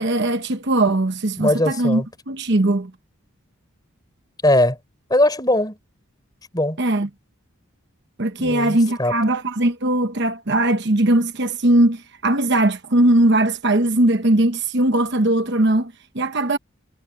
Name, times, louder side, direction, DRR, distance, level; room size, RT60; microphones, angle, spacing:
voice 1, 0.0-2.9 6.8-7.1 8.2-16.6, right 1 dB, 50° right, 1.1 m, -19 dB
voice 2, 1.4-2.1 4.4-4.8 5.1-5.8 6.5-6.8 8.4-9.2, left 1 dB, 20° left, 4.3 m, -20 dB
head